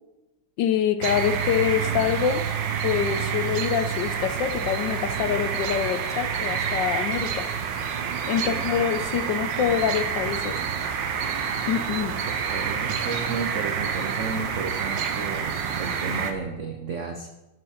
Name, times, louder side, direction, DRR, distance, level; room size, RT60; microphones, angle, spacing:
voice 1, 0.6-2.5 2.8-7.5 8.3-10.6 11.7-12.2, left 9 dB, 75° left, 10 dB, 1.1 m, -25 dB
sound 1, 1.0-16.3, right 7 dB, 65° right, 1.4 m, -28 dB
voice 2, 8.4-8.8 12.3-17.3, right 5 dB, 85° right, 4 dB, 0.6 m, -33 dB
11.5 x 6.6 x 4.3 m, 1.0 s
omnidirectional pair, 2.3 m